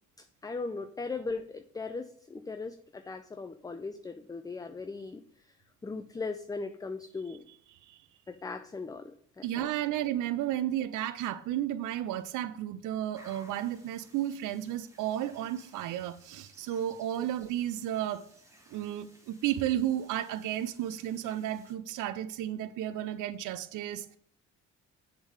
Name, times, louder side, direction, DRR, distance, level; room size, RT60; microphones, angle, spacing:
voice 1, 0.4-5.2 5.8-7.5 8.3-9.7 17.2-17.3, left 3 dB, 10° left, 0.4 m, -38 dB
voice 2, 9.4-18.2 18.7-24.2, right 12 dB, 85° right, 0.5 m, -33 dB
sound 1, 13.1-21.7, equal, 10° right, 1.8 m, -59 dB
7.1 x 3.7 x 6.3 m
cardioid pair, 90°, 30 cm